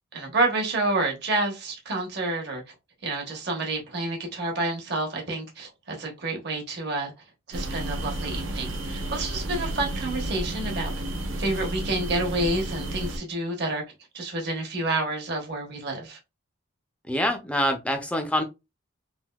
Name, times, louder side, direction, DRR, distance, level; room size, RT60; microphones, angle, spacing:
voice 1, 0.1-2.6 3.0-7.1 7.5-11.0 11.4-13.8 14.1-16.2, right 2 dB, 55° right, 1.1 m, -29 dB
sound 1, 7.5-13.2, right 1 dB, 70° right, 0.6 m, -32 dB
voice 2, 17.1-18.4, equal, 5° left, 0.4 m, -25 dB
3.4 x 2.6 x 2.3 m
head